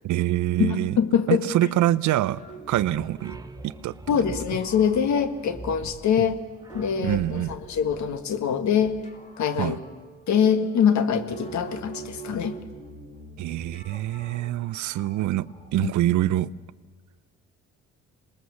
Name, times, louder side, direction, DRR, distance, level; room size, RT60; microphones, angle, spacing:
voice 1, 0.0-1.0 1.3-2.4 2.7-3.4 3.6-3.9 7.0-7.5 9.6-9.8 13.4-16.5, right 14 dB, 75° right, 0.6 m, -25 dB
voice 2, 0.6-1.5 4.1-6.4 6.7-9.0 9.4-9.8 10.3-12.6 15.8-15.9, left 7 dB, 70° left, 1.7 m, -24 dB
sound 1, 2.4-16.0, right 3 dB, 25° left, 2.9 m, -46 dB
sound 2, 2.7-8.9, right 2 dB, 10° right, 1.2 m, -44 dB
26.5 x 20.0 x 7.1 m
cardioid pair, 90°, 30 cm